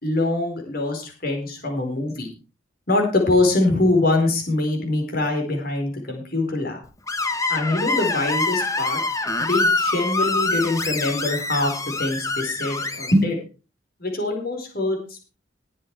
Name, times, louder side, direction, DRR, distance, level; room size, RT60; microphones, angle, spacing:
voice 1, 0.0-2.3 2.9-6.8 7.5-9.0 9.4-13.4 14.0-15.2, left 2 dB, 50° left, 2 dB, 4.5 m, -23 dB
Screech, 7.1-13.1, left 3 dB, 15° left, 1.0 m, -25 dB
19.0 x 7.7 x 4.7 m, 0.34 s
head